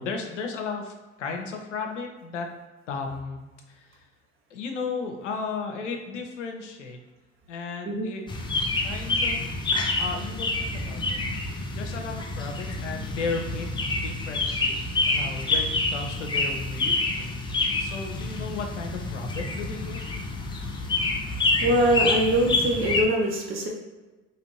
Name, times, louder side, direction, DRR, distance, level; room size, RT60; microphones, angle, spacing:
voice 1, 0.0-2.5 2.9-4.0 4.5-7.0 7.5-8.3 8.8-9.4 10.0-11.2 11.7-14.8 15.1-17.3 17.8-20.0, left 4 dB, 85° left, 3 dB, 0.5 m, -34 dB
sound 1, 8.3-23.0, left 2 dB, 15° left, 0.4 m, -28 dB
voice 2, 21.6-23.7, right 1 dB, 35° right, 0 dB, 0.7 m, -23 dB
2.8 x 2.5 x 3.0 m, 1.2 s
figure-of-eight pair, 60°, 36 cm